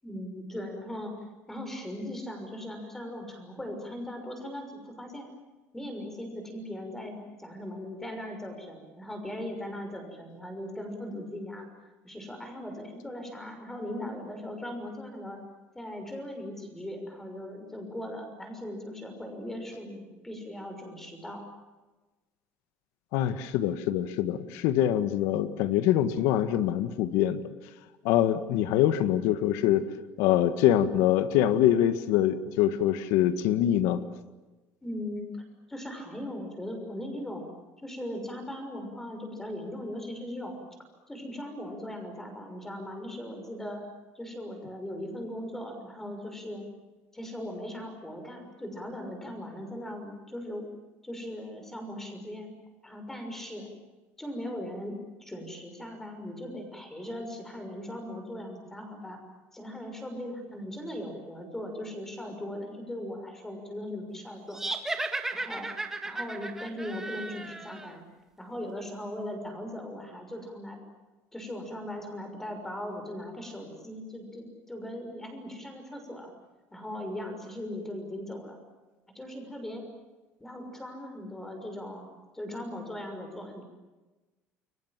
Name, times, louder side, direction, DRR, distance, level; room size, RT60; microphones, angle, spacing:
voice 1, 0.0-1.2 1.5-5.3 5.7-11.7 12.0-15.4 15.7-21.4 34.8-35.3 35.7-37.4 37.8-40.5 41.1-43.8 44.1-46.6 47.1-50.7 51.0-52.5 52.8-53.7 54.2-59.2 59.5-64.6 65.3-65.7 66.0-68.0 68.4-70.8 71.3-76.3 76.7-78.6 79.1-79.8 80.4-82.1 82.3-83.6, left 1 dB, 10° left, 5 dB, 6.2 m, -39 dB
voice 2, 23.1-27.4 28.0-29.8 30.2-34.0, left 11 dB, 90° left, 11 dB, 1.7 m, -24 dB
sound 1, 64.5-67.9, right 2 dB, 10° right, 1.8 m, -35 dB
30.0 x 23.5 x 7.6 m, 1.2 s
cardioid pair, 155°, 5 cm